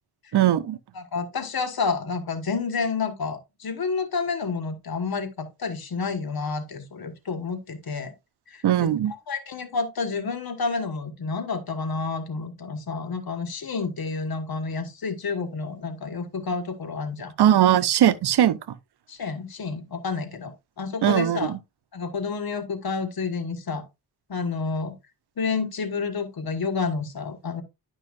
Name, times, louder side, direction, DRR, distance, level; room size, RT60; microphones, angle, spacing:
voice 1, 0.3-0.8 8.6-9.1 17.4-18.6 21.0-21.6, right 11 dB, 80° right, 0.7 m, -19 dB
voice 2, 0.9-8.1 8.5-17.3 19.1-21.5 21.9-23.8 24.3-24.9 25.4-27.6, left 4 dB, 65° left, 1.5 m, -30 dB
10.5 x 5.5 x 2.4 m
cardioid pair, 60°, 39 cm